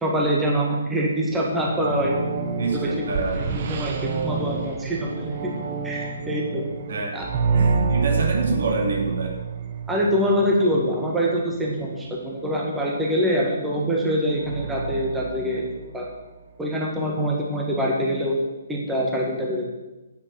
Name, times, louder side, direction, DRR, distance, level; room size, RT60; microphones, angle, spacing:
voice 1, 0.0-2.2 2.7-2.9 3.3-5.5 5.8-6.6 7.1-7.3 9.9-15.6 15.9-16.0 16.6-18.4 18.7-19.6, equal, 10° right, -3 dB, 1.7 m, -24 dB
sound 1, 1.3-11.3 14.4-16.2, right 5 dB, 45° right, 1.3 m, -28 dB
voice 2, 2.6-3.5 6.9-7.1 7.5-9.4, right 3 dB, 65° right, 1 dB, 2.6 m, -26 dB
9.0 x 7.1 x 7.0 m, 1.1 s
hypercardioid pair, 140°, 0 cm